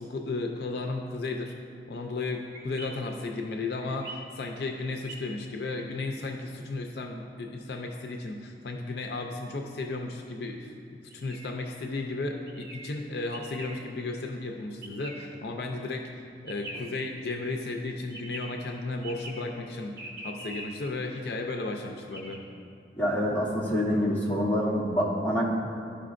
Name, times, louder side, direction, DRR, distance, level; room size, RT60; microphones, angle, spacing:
voice 1, 0.0-1.5 1.9-10.7 11.1-19.9 20.2-22.4, left 3 dB, 65° left, 2 dB, 0.5 m, -34 dB
sound 1, 2.5-2.9 3.8-4.2 4.8-5.2 11.1-11.5 12.5-12.9 13.3-13.8 14.8-15.2 16.5-16.9 18.1-18.5 19.0-19.4 20.0-20.7 22.1-22.4, right 1 dB, 65° right, 1.2 m, -42 dB
voice 2, 23.0-25.4, equal, 10° left, -6 dB, 1.1 m, -26 dB
12.0 x 5.0 x 2.5 m, 2.5 s
head